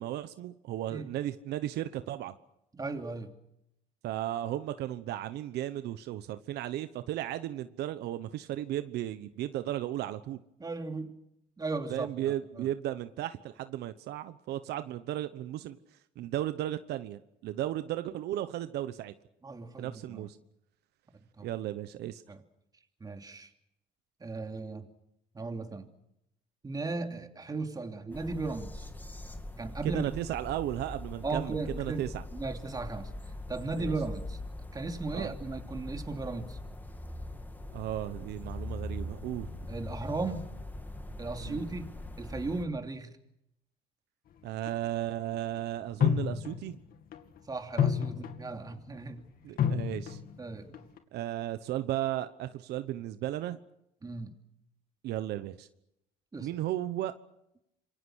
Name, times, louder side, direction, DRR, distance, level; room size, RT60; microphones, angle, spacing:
voice 1, 0.0-2.3 4.0-10.4 11.9-15.8 16.2-19.1 19.8-20.4 21.4-22.2 29.8-32.2 33.8-33.9 35.1-35.3 37.7-39.5 41.4-41.7 44.4-46.8 49.4-50.2 51.1-53.6 55.0-55.7 56.4-57.1, right 13 dB, 80° right, 11 dB, 1.1 m, -35 dB
voice 2, 2.7-3.3 10.6-11.1 11.6-12.7 19.4-20.3 21.4-21.5 22.3-22.4 23.0-23.5 24.2-24.9 25.3-25.9 26.6-28.9 29.6-30.1 31.2-32.0 32.3-33.1 33.5-34.4 34.7-36.6 39.7-40.5 41.2-43.1 47.5-49.2 50.4-50.9 54.0-54.4 56.3-56.5, right 3 dB, 20° right, 5 dB, 3.0 m, -36 dB
sound 1, 28.1-42.7, left 1 dB, 10° left, 2.4 m, -42 dB
sound 2, 44.7-44.8 46.0-46.8 47.1-47.4 47.8-48.7 49.6-50.4 50.7-51.0, left 8 dB, 60° left, 2.3 m, -29 dB
27.0 x 23.5 x 6.4 m, 0.82 s
cardioid pair, 110°, 17 cm